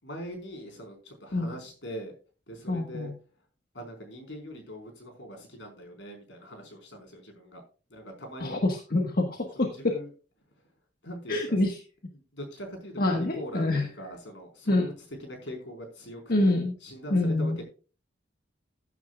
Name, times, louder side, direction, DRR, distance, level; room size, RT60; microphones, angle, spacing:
voice 1, 0.0-2.1 2.5-3.1 3.7-7.6 7.9-8.6 9.5-10.1 11.0-11.6 12.1-14.9 15.2-17.6, equal, 75° left, 3 dB, 4.8 m, -42 dB
voice 2, 2.7-3.1 8.4-10.0 11.3-11.8 13.0-13.9 14.7-14.9 16.3-16.7 17.1-17.6, left 2 dB, 55° left, 2 dB, 1.5 m, -26 dB
15.0 x 9.4 x 2.4 m, 0.36 s
head